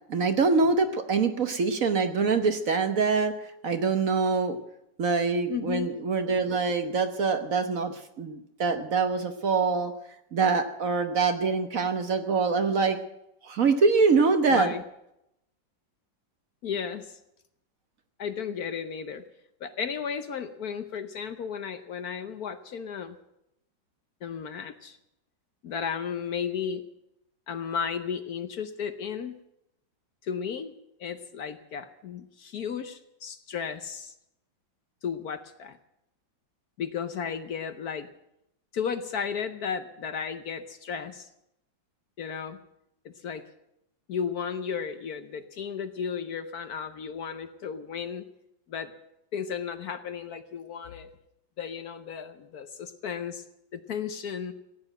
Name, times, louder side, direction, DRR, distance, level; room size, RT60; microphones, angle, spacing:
voice 1, 0.1-3.3 3.6-4.6 5.0-9.9 10.3-13.0 13.4-14.7, right 4 dB, 50° right, 8 dB, 1.2 m, -24 dB
voice 2, 5.5-6.0 14.5-14.8 16.6-17.2 18.2-19.2 19.6-23.2 24.2-25.0 25.6-26.8 27.5-29.3 30.2-30.7 31.0-34.1 35.0-35.8 36.8-38.1 38.7-41.3 42.2-42.6 43.0-43.4 44.1-48.2 48.7-48.9 49.3-51.1 51.6-53.4 53.7-54.5, left 7 dB, 60° left, 10 dB, 1.2 m, -34 dB
15.5 x 9.6 x 9.0 m, 0.82 s
omnidirectional pair, 2.1 m